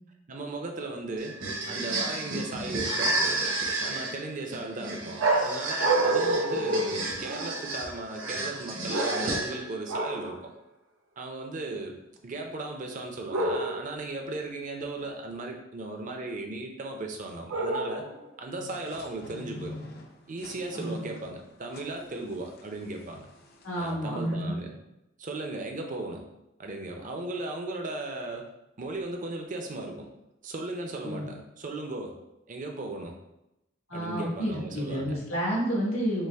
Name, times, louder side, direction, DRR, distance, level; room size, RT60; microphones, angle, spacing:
voice 1, 0.3-1.4 1.7-3.4 3.8-10.5 11.2-12.0 12.2-18.1 18.4-19.8 20.3-23.3 23.8-24.7 25.2-26.2 26.6-28.5 28.8-30.1 30.4-32.2 32.5-33.2 33.9-35.2, right 2 dB, 40° right, 2 dB, 0.5 m, -36 dB
sound 1, 1.2-9.8, right 2 dB, 70° right, 1.1 m, -32 dB
sound 2, 5.2-7.7 8.9-9.5 9.9-10.4 13.3-14.0 17.5-18.2, right 2 dB, 90° right, 0.6 m, -28 dB
sound 3, 18.6-23.9, left 2 dB, 50° left, 0.5 m, -46 dB
voice 2, 23.6-24.5 31.0-31.3 33.9-36.3, equal, 85° left, -6 dB, 1.4 m, -30 dB
5.3 x 2.0 x 3.4 m, 0.89 s
head